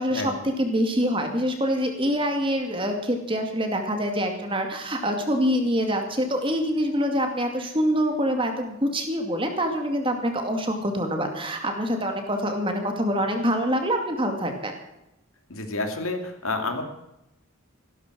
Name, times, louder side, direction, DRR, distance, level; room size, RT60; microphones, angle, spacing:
voice 1, 0.0-14.7, equal, 25° right, 4 dB, 2.3 m, -25 dB
voice 2, 15.5-16.8, left 2 dB, 80° left, 5 dB, 2.6 m, -29 dB
15.5 x 13.0 x 6.2 m, 0.89 s
head